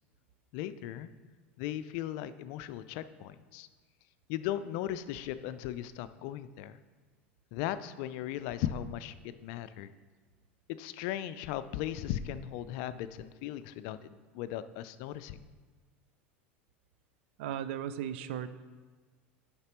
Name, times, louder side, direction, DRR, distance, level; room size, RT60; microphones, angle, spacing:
voice 1, 0.5-1.1 1.6-3.7 4.3-6.8 7.5-9.9 10.8-15.4, left 11 dB, 60° left, 14 dB, 0.4 m, -37 dB
voice 2, 17.4-18.5, right 10 dB, 70° right, 12 dB, 0.5 m, -36 dB
9.5 x 5.9 x 3.0 m, 1.4 s
hypercardioid pair, 90°, 7 cm